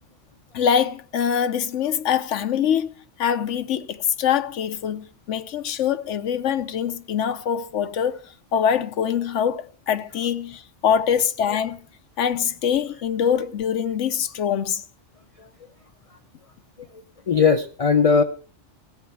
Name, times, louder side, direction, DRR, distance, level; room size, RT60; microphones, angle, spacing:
voice 1, 0.5-11.8 12.2-14.8, left 8 dB, 85° left, 1.1 m, -24 dB
voice 2, 16.9-18.2, left 5 dB, 40° left, 0.6 m, -19 dB
16.5 x 7.4 x 5.8 m
omnidirectional pair, 1.2 m